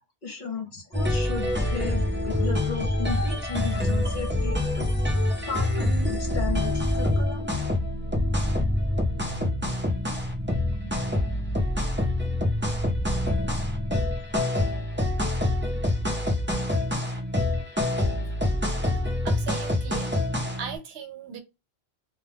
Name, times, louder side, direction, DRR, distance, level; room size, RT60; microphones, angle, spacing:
voice 1, 0.2-5.2 5.5-7.7 10.8-10.9, left 4 dB, 50° left, 0.9 m, -35 dB
sound 1, 0.9-20.8, left 1 dB, 15° right, 0.6 m, -26 dB
voice 2, 19.2-20.1 20.6-21.4, right 7 dB, 70° right, 0.8 m, -37 dB
2.2 x 2.2 x 3.4 m
omnidirectional pair, 1.1 m